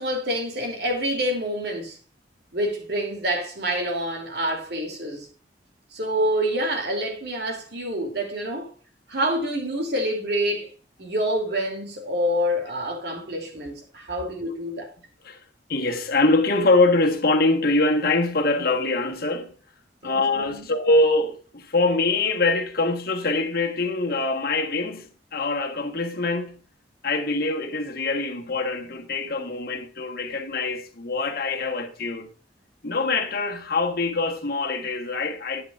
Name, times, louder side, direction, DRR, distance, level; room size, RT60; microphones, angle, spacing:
voice 1, 0.0-2.0 2.5-5.3 5.9-8.7 9.1-10.7 11.0-14.9 20.0-20.7, equal, 60° right, 2.8 m, -27 dB
voice 2, 15.7-19.5 20.0-26.6 27.0-32.3 32.8-35.6, left 2 dB, 55° left, 1.3 m, -24 dB
11.0 x 9.3 x 2.5 m
head